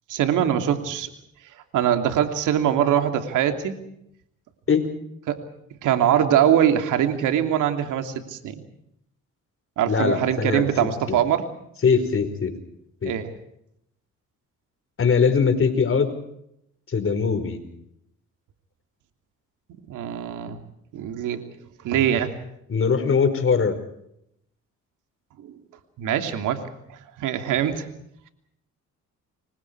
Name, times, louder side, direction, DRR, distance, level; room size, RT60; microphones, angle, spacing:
voice 1, 0.1-1.1 1.7-3.8 5.3-5.4 5.8-8.6 9.8-11.5 13.0-13.3 19.9-20.6 20.9-21.4 21.8-22.3 25.4-25.5 26.0-26.6 26.9-27.9, right 10 dB, 85° right, 7 dB, 3.0 m, -22 dB
voice 2, 9.9-10.7 11.1-11.2 11.8-12.5 13.0-13.1 15.0-16.1 16.9-17.6 22.7-23.7, left 5 dB, 45° left, 9 dB, 5.1 m, -21 dB
29.5 x 24.5 x 4.8 m, 0.76 s
cardioid pair, 90°, 30 cm